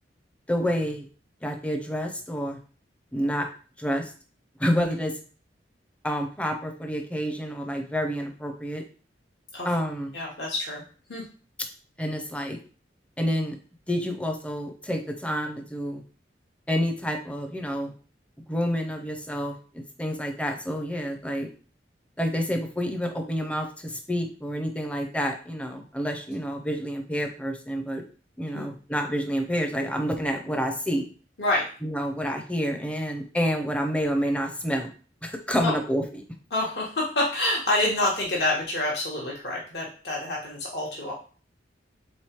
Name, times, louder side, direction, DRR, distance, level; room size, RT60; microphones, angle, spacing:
voice 1, 0.5-1.1 1.4-2.6 3.1-3.5 3.8-4.1 4.6-5.1 6.0-8.8 9.6-10.1 12.0-12.6 13.2-13.6 13.9-16.0 16.7-17.9 18.5-21.5 22.2-28.0 28.4-31.1 31.8-34.9 35.2-36.2, equal, 5° left, 4 dB, 0.5 m, -28 dB
voice 2, 10.1-10.8 11.1-11.2 28.5-28.7 31.4-31.7 35.6-35.7 36.5-41.1, left 1 dB, 65° left, -3 dB, 1.1 m, -27 dB
3.8 x 3.1 x 4.4 m, 0.39 s
head